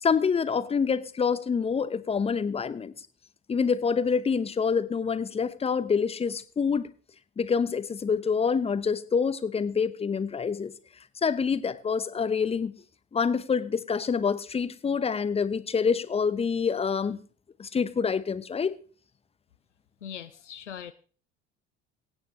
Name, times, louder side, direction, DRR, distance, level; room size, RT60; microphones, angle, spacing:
voice 1, 0.0-2.9 3.5-6.9 7.4-10.7 11.2-12.7 13.1-17.2 17.6-18.7, left 6 dB, 15° left, 0.8 m, -26 dB
voice 2, 20.0-20.9, left 9 dB, 85° left, 0.5 m, -40 dB
23.0 x 9.0 x 3.2 m
figure-of-eight pair, 65°, 35 cm